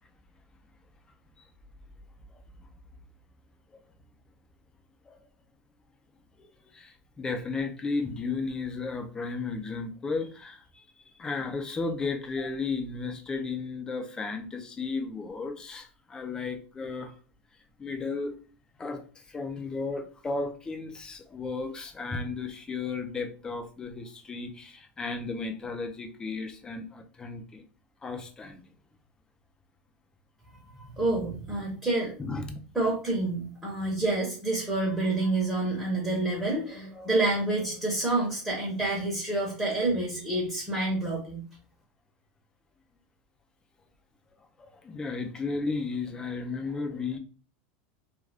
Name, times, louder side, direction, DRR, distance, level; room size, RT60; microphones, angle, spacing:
voice 1, 6.4-10.9 11.2-17.1 17.8-18.4 18.8-27.6 28.0-28.7 32.2-32.6 44.6-47.2, left 4 dB, 15° left, 5 dB, 0.4 m, -34 dB
voice 2, 30.7-32.1 32.7-41.4, right 2 dB, 10° right, -4 dB, 0.8 m, -28 dB
2.4 x 2.2 x 3.3 m, 0.40 s
supercardioid pair, 150°, 5 cm